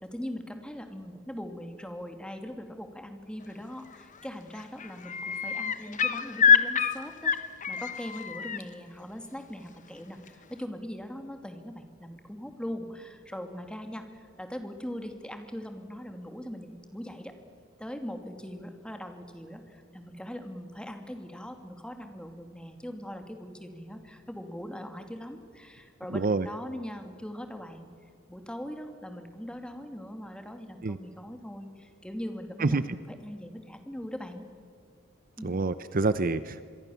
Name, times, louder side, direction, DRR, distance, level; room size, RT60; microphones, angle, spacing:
voice 1, 0.0-17.4 17.8-27.9 28.3-34.4 35.4-35.6, equal, 5° left, 6 dB, 2.4 m, -41 dB
sound 1, 3.9-4.3 4.5-8.6 10.3-10.4, left 7 dB, 40° left, 1.2 m, -26 dB
voice 2, 26.1-26.5 30.8-31.0 32.6-32.8 35.4-36.6, right 3 dB, 45° right, 14 dB, 0.7 m, -27 dB
26.5 x 22.5 x 7.1 m, 2.1 s
head